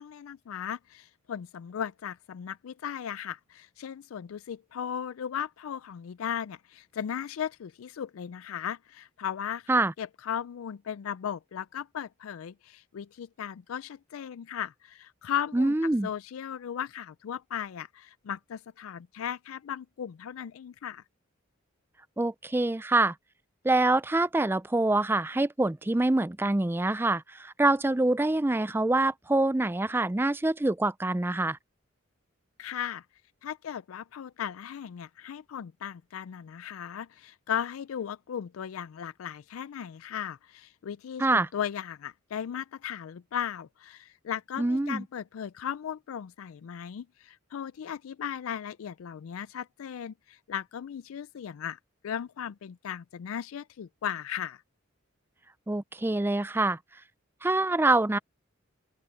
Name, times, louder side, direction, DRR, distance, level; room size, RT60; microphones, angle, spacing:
voice 1, 0.0-15.7 16.0-21.0 32.6-33.0 33.4-51.8 52.0-54.6, left 9 dB, 90° left, 0.4 m, -37 dB
voice 2, 15.5-16.1 22.2-23.1 23.6-31.6 41.2-41.5 44.6-45.0 55.7-56.8 57.4-58.2, right 2 dB, 10° right, 0.4 m, -25 dB
open air
head